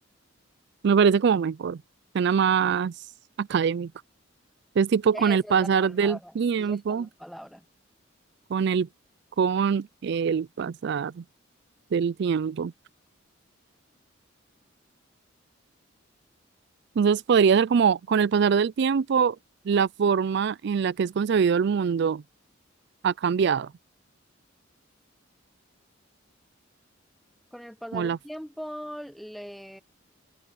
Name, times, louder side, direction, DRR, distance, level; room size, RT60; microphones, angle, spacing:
voice 1, 0.8-1.8 2.1-2.9 3.4-3.9 4.8-7.1 8.5-8.9 9.4-11.2 11.9-12.7 17.0-19.4 19.7-22.2 23.0-23.7 27.9-28.2, right 6 dB, 60° right, 0.4 m, -23 dB
voice 2, 5.1-7.7 27.5-29.8, equal, ahead, 0.6 m, -40 dB
head